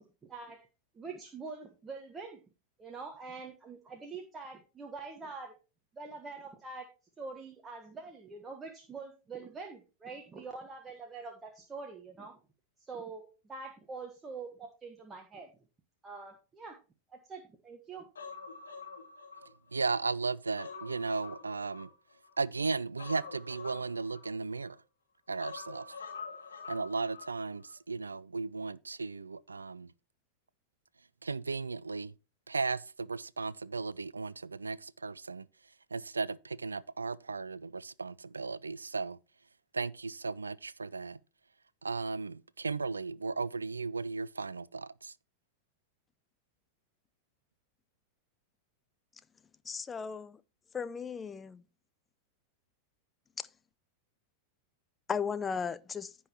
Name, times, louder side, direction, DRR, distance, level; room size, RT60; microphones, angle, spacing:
voice 1, 0.3-0.7 0.9-2.4 2.8-5.5 5.9-6.9 7.2-12.4 12.9-15.5 16.0-16.8 17.1-18.0, right 4 dB, 20° right, 1.4 m, -45 dB
Human voice, 18.2-19.9 20.3-22.3 23.0-24.7 25.4-27.3 27.6-27.7, left 5 dB, 70° left, 2.9 m, -46 dB
voice 2, 19.7-21.9 22.4-24.8 25.3-25.9 26.7-29.9 31.2-32.1 32.5-35.4 35.9-39.2 39.7-41.2 41.8-45.1, right 4 dB, 75° right, 0.4 m, -35 dB
voice 3, 49.6-50.4 50.7-51.6 53.4-53.5 55.1-56.2, left 6 dB, 20° left, 0.6 m, -36 dB
15.0 x 5.5 x 3.0 m
figure-of-eight pair, 90°, 0 cm